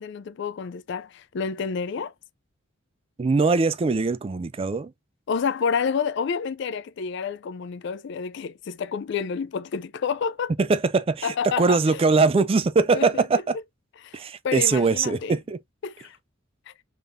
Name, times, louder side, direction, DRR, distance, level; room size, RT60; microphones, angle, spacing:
voice 1, 0.0-2.1 5.3-10.5 11.2-12.0 12.9-13.4 14.0-15.4 15.8-16.2 16.7-16.8, left 6 dB, 60° left, 0.4 m, -29 dB
voice 2, 3.2-4.9 10.6-13.6 14.1-15.6, right 4 dB, 30° right, 0.3 m, -22 dB
3.5 x 3.4 x 2.6 m
head